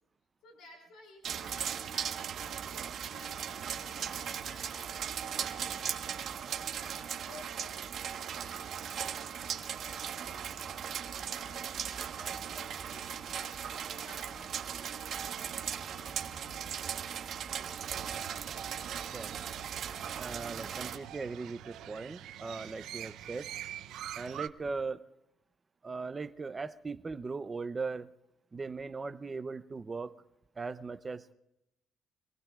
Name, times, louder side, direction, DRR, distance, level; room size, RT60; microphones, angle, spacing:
voice 1, 0.4-2.3 2.6-6.2 6.5-8.2 8.7-9.4 9.7-10.8 11.2-11.7 12.1-15.4 15.7-16.7, left 3 dB, 85° left, 0 dB, 4.9 m, -57 dB
sound 1, 1.2-21.0, right 8 dB, 50° right, 1.3 m, -38 dB
Crow, 17.7-24.5, right 12 dB, 75° right, 0.6 m, -45 dB
voice 2, 20.2-23.5 24.1-25.0 25.8-28.1 28.5-30.2 30.6-31.3, right 4 dB, 20° right, 12 dB, 0.6 m, -39 dB
26.0 x 19.5 x 2.4 m, 0.87 s
cardioid pair, 160°, 0 cm